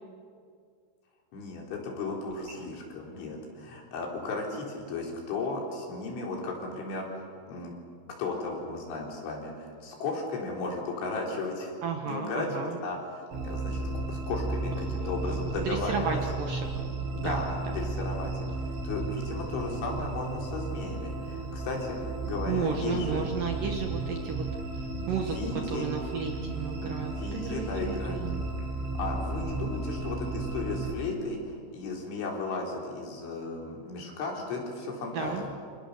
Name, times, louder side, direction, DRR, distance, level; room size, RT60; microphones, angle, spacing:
voice 1, 1.3-7.1 7.5-7.7 8.2-11.8 12.0-16.2 17.2-18.3 18.6-23.2 25.2-25.9 26.8-26.9 27.2-28.2 28.9-35.5, left 3 dB, 70° left, -1 dB, 6.4 m, -35 dB
voice 2, 11.8-12.8 15.0-15.1 15.6-16.7 17.1-17.7 22.5-24.4 25.1-28.5 35.1-35.4, right 6 dB, 60° right, 3 dB, 2.4 m, -33 dB
sound 1, 13.3-30.9, right 3 dB, 80° right, 7.5 m, -34 dB
28.0 x 27.5 x 6.8 m, 2.2 s
omnidirectional pair, 5.7 m